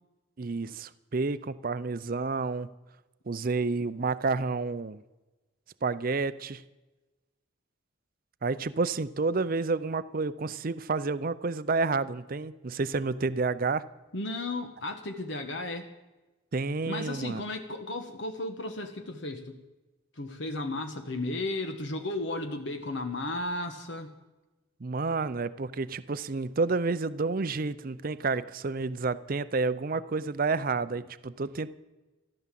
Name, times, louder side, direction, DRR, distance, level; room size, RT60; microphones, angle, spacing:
voice 1, 0.4-2.7 3.3-5.0 5.8-6.6 8.4-13.9 16.5-17.4 24.8-31.7, right 4 dB, 45° right, 15 dB, 0.5 m, -30 dB
voice 2, 14.1-15.9 16.9-19.6 20.1-24.2, left 2 dB, 60° left, 6 dB, 1.2 m, -34 dB
15.0 x 12.0 x 7.5 m, 1.1 s
head